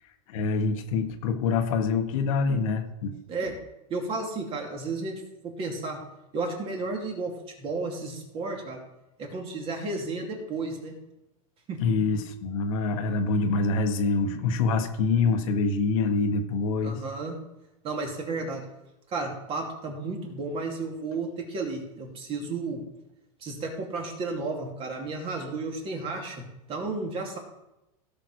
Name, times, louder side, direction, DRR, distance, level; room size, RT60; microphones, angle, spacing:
voice 1, 0.3-3.2 11.8-17.0, left 4 dB, 65° left, 5 dB, 1.5 m, -25 dB
voice 2, 3.9-6.0 6.3-7.3 7.6-8.8 9.2-10.9 11.7-11.8 16.8-17.4 17.8-18.6 19.1-22.8 23.4-26.4 26.7-27.4, right 3 dB, 30° right, 1 dB, 2.6 m, -33 dB
16.5 x 6.0 x 4.8 m, 0.92 s
supercardioid pair, 150°, 19 cm